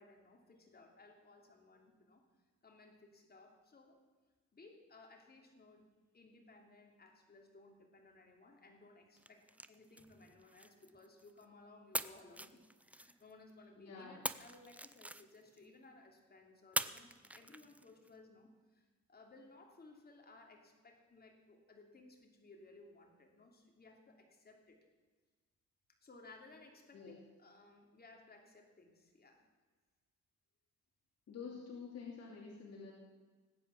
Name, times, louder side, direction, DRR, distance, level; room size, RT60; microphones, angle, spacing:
voice 1, 0.0-2.2 2.6-4.0 4.5-5.8 6.1-24.9 26.0-29.4, left 2 dB, 30° left, 2 dB, 3.1 m, -60 dB
sound 1, 9.2-11.4 11.9-13.5 14.2-15.7 16.7-18.1, right 1 dB, 5° right, 0.6 m, -44 dB
voice 2, 13.8-14.2 26.9-27.2 31.3-32.9, left 5 dB, 55° left, -2 dB, 2.9 m, -48 dB
19.5 x 8.9 x 7.0 m, 1.4 s
cardioid pair, 90°, 30 cm